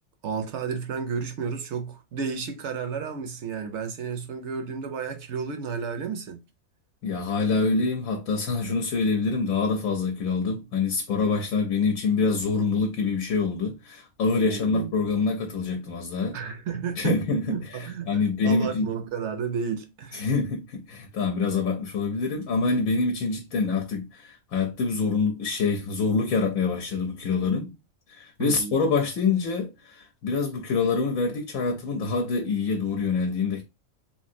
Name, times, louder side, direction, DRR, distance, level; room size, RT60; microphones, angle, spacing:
voice 1, 0.2-6.4 14.4-15.0 16.3-20.3 28.4-28.8, right 6 dB, 65° right, 0.8 m, -32 dB
voice 2, 7.0-16.4 17.0-18.9 20.1-27.7 28.1-33.6, left 4 dB, 80° left, 1.0 m, -26 dB
3.1 x 2.6 x 2.6 m
omnidirectional pair, 1.5 m